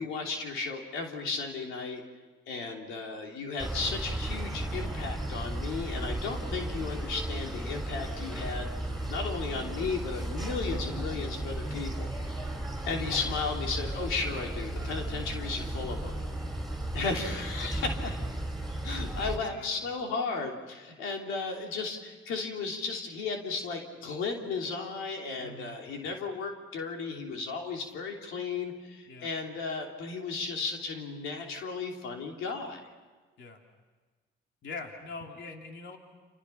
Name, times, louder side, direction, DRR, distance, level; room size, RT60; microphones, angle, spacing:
voice 1, 0.0-2.0 2.5-12.4 12.8-16.1 16.9-17.9 18.8-32.8, left 4 dB, 90° left, 1 dB, 3.3 m, -35 dB
sound 1, 3.6-19.4, right 1 dB, ahead, 4.9 m, -35 dB
voice 2, 17.3-17.7 19.2-19.9 25.4-25.8 29.1-29.3 33.4-33.6 34.6-36.0, left 3 dB, 70° left, 2 dB, 3.1 m, -43 dB
29.5 x 28.0 x 5.9 m, 1.4 s
cardioid pair, 90°, 20 cm